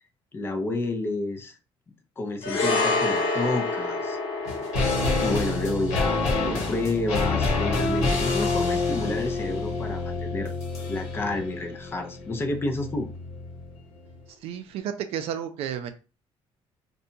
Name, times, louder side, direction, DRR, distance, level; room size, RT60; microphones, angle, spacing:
voice 1, 0.3-1.6 2.2-4.2 5.2-10.5 10.9-13.1, left 2 dB, 20° left, 4 dB, 0.4 m, -30 dB
sound 1, 2.4-10.9 11.2-11.4, left 3 dB, 60° left, 0.9 m, -30 dB
sound 2, 4.4-13.8 14.1-14.2, left 3 dB, 85° left, 1.1 m, -27 dB
voice 2, 14.4-15.9, right 9 dB, 70° right, 9 dB, 0.4 m, -32 dB
2.7 x 2.2 x 2.6 m, 0.32 s
cardioid pair, 155°, 11 cm